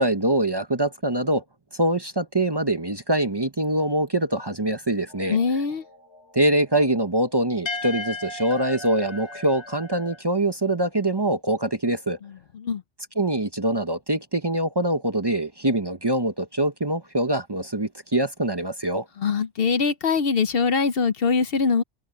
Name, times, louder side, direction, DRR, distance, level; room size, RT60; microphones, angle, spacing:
voice 1, 0.0-1.4 1.8-5.4 6.3-12.2 13.2-19.0, right 1 dB, 25° right, 0.9 m, -24 dB
sound 1, 5.1-10.2, left 2 dB, 75° left, 2.9 m, -37 dB
voice 2, 5.3-5.8 12.2-12.8 19.2-21.8, left 5 dB, 60° left, 0.9 m, -23 dB
omnidirectional pair, 1.2 m